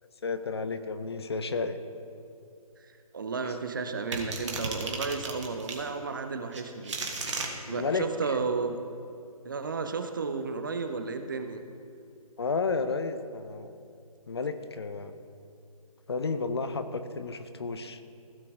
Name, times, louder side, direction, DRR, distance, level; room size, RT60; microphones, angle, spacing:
voice 1, 0.2-1.8 3.4-3.5 7.7-8.4 12.4-13.7 14.3-15.1 16.1-18.0, left 4 dB, 45° left, 10 dB, 0.6 m, -32 dB
voice 2, 3.1-7.0 7.7-8.8 9.4-11.6, right 4 dB, 35° right, 7 dB, 0.5 m, -33 dB
sound 1, 4.1-5.8 6.5-7.5, right 3 dB, 50° right, 1.4 m, -34 dB
16.0 x 5.7 x 3.6 m, 2.6 s
figure-of-eight pair, 145°, 19 cm